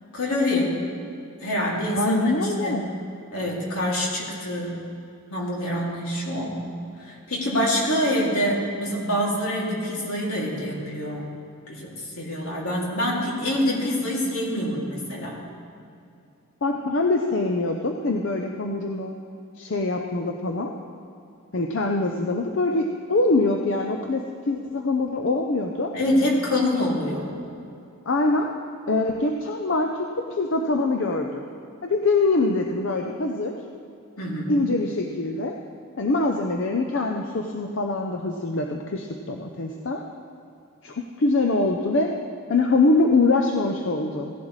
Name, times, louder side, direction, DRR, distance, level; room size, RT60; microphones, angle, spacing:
voice 1, 0.1-0.9 1.4-2.9 3.3-4.8 5.3-6.7 7.0-11.3 11.7-11.9 12.2-15.4 25.9-27.3 34.2-34.5, left 1 dB, 75° left, -3 dB, 2.6 m, -26 dB
voice 2, 1.9-2.8 16.6-19.1 19.6-20.7 21.5-25.9 28.1-28.5 28.9-31.4 31.8-33.5 34.5-35.6 36.0-40.0 40.8-42.1 42.5-44.3, left 2 dB, 55° left, 3 dB, 0.6 m, -24 dB
16.5 x 11.0 x 3.2 m, 2.6 s
head